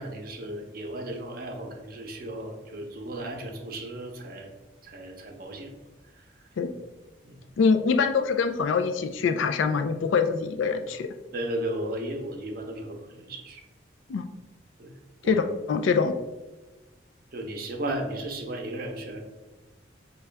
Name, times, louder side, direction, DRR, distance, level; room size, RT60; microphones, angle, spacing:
voice 1, 0.0-4.5 4.8-5.9 6.1-6.5 7.2-7.4 11.3-13.6 14.8-14.9 15.2-15.4 17.3-19.2, right 1 dB, 50° right, 2 dB, 0.6 m, -35 dB
voice 2, 7.6-11.1 14.1-14.2 15.2-16.1, left 5 dB, 85° left, 8 dB, 0.4 m, -24 dB
6.1 x 2.3 x 3.3 m, 1.1 s
head